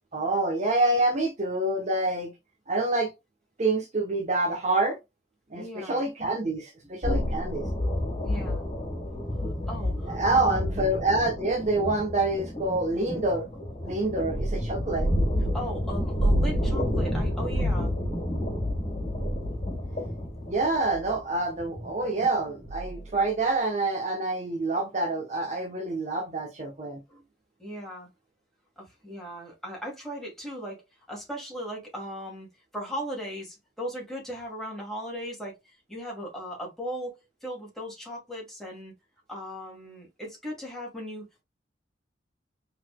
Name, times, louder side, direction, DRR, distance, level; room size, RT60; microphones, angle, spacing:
voice 1, 0.1-2.3 2.7-3.1 3.6-5.0 5.5-7.7 10.1-13.5 13.8-15.1 20.4-27.0, right 2 dB, 40° right, 0.9 m, -27 dB
voice 2, 5.5-6.1 6.8-6.9 8.2-8.7 9.4-10.7 15.5-17.9 27.1-27.3 27.6-28.1 28.8-30.8 31.1-32.5 32.7-38.9 39.3-41.4, equal, ahead, 2.4 m, -37 dB
sound 1, 7.0-23.2, equal, 40° left, 2.6 m, -29 dB
4.8 x 4.0 x 2.2 m
head